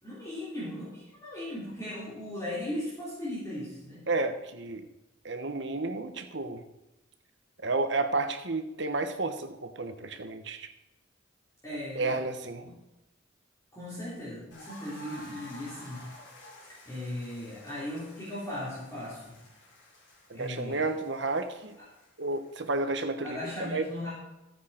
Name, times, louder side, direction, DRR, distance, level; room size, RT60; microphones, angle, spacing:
voice 1, 0.0-4.1 11.6-12.2 12.6-12.8 13.7-16.1 16.9-19.4 20.3-20.8 23.2-24.1, left 1 dB, 15° left, -10 dB, 4.0 m, -37 dB
voice 2, 4.1-4.9 5.2-6.6 7.6-10.7 11.9-12.7 20.3-21.8 22.2-23.8, right 3 dB, 60° right, 8 dB, 1.2 m, -31 dB
sound 1, 14.5-23.2, left 1 dB, 60° left, 4.9 m, -52 dB
15.5 x 9.5 x 4.5 m, 0.96 s
head